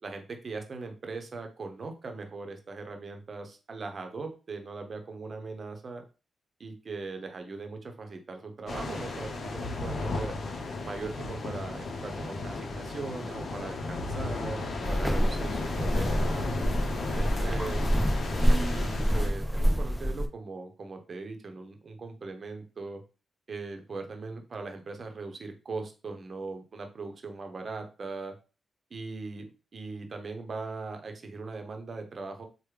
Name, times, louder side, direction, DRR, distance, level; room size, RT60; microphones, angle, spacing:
voice 1, 0.0-6.0 6.6-10.4 10.8-16.6 17.1-17.8 18.4-23.0 23.5-28.4 28.9-29.4 29.7-32.4, right 3 dB, 50° right, 5 dB, 0.7 m, -39 dB
sound 1, 8.7-19.3, left 3 dB, 65° left, 0.6 m, -34 dB
sound 2, 14.8-20.3, equal, ahead, 0.5 m, -27 dB
3.3 x 2.1 x 3.2 m, 0.33 s
cardioid pair, 55°, 0 cm